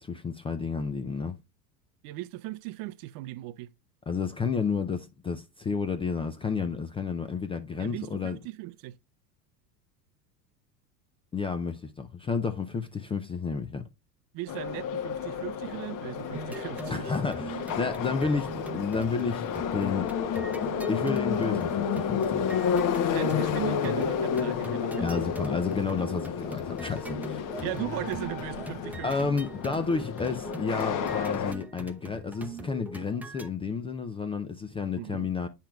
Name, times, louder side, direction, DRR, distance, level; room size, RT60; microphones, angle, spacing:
voice 1, 0.0-1.4 4.1-8.4 11.3-13.8 16.9-20.1 20.9-22.5 25.0-27.4 29.0-35.5, left 5 dB, 15° left, 0.3 m, -31 dB
voice 2, 2.0-3.7 7.8-9.0 14.3-17.1 23.1-25.1 27.6-29.3 35.0-35.3, right 17 dB, 45° right, 0.5 m, -37 dB
Subway metro underground, 14.5-31.5, left 7 dB, 40° left, 1.0 m, -31 dB
sound 1, 16.3-33.5, right 1 dB, 5° right, 0.7 m, -41 dB
8.8 x 5.7 x 2.3 m
hypercardioid pair, 90°, 49 cm